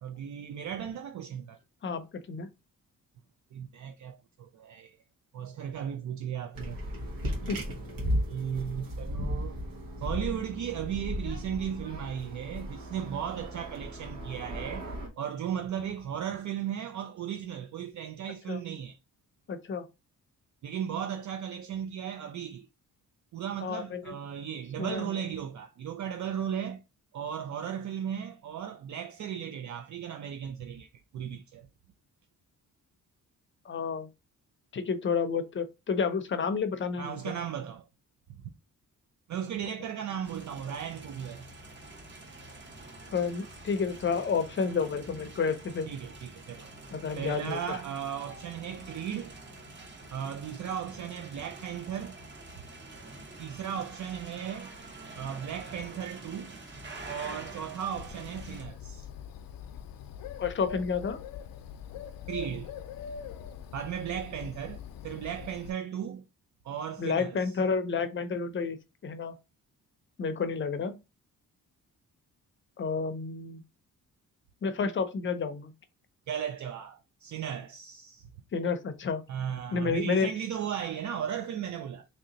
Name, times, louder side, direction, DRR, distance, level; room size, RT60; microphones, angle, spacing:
voice 1, 0.0-1.6 3.5-5.0 5.3-6.8 8.3-9.6 10.0-14.9 15.2-19.0 20.6-22.7 23.3-26.8 27.1-30.9 31.1-31.7 37.0-37.9 38.4-38.5 39.3-41.5 45.9-46.7 47.2-49.3 50.1-52.2 53.4-54.7 55.2-56.6 57.1-59.1 62.3-62.7 63.7-66.3 66.6-67.4 76.3-78.3 79.3-82.1, right 9 dB, 60° right, 0.5 m, -36 dB
voice 2, 1.8-2.5 7.5-7.6 18.5-18.6 19.5-19.9 23.6-24.1 24.8-25.2 33.6-34.1 34.7-37.3 43.1-45.9 46.9-47.8 60.4-61.2 67.0-69.3 70.2-71.0 72.8-73.6 74.6-75.7 78.5-79.2 79.7-80.3, left 5 dB, 35° left, 0.5 m, -30 dB
sound 1, 6.5-15.1, equal, 90° right, 1.4 m, -35 dB
sound 2, 40.2-58.6, right 2 dB, 35° right, 0.8 m, -47 dB
Bird, 58.0-65.7, left 7 dB, 90° left, 0.5 m, -43 dB
3.2 x 2.8 x 3.8 m
wide cardioid pair, 165°, 33 cm